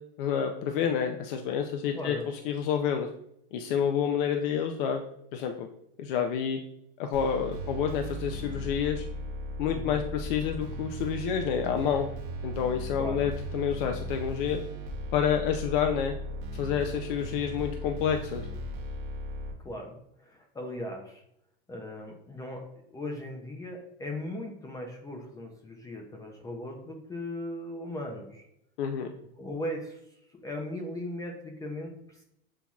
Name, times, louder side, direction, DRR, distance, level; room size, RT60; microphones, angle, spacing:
voice 1, 0.2-3.1 3.5-5.0 5.3-5.7 6.0-6.6 7.0-9.1 9.6-12.1 12.4-14.6 15.1-16.1 16.5-18.5 28.8-29.1, left 8 dB, 65° left, 5 dB, 0.5 m, -29 dB
voice 2, 1.9-2.3 9.7-10.0 13.0-13.3 19.6-21.2 21.7-22.6 22.9-28.4 29.4-30.0 30.4-32.2, left 1 dB, 10° left, 1 dB, 0.5 m, -38 dB
sound 1, 7.1-19.5, right 1 dB, 45° right, 1.1 m, -37 dB
7.1 x 2.8 x 2.3 m, 0.76 s
supercardioid pair, 140°, 29 cm